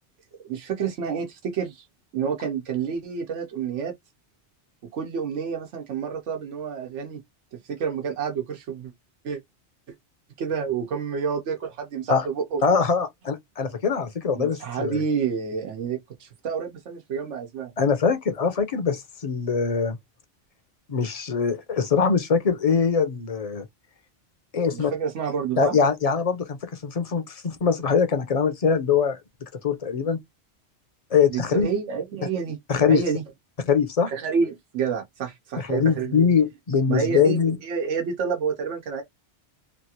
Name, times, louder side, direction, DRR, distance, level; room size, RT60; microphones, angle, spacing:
voice 1, 0.4-1.8 2.1-3.9 4.9-7.2 7.5-8.9 9.2-9.4 10.4-12.6 14.4-17.7 24.7-25.8 31.3-32.6 32.9-33.2 34.1-36.1 36.9-39.0, right 6 dB, 90° right, 1.1 m, -29 dB
voice 2, 12.6-15.0 17.8-20.0 20.9-23.7 24.5-24.9 25.6-29.2 29.6-30.2 31.1-31.7 32.7-33.0 33.7-34.1 35.6-37.6, left 6 dB, 45° left, 0.5 m, -22 dB
3.2 x 2.4 x 2.8 m
omnidirectional pair, 1.2 m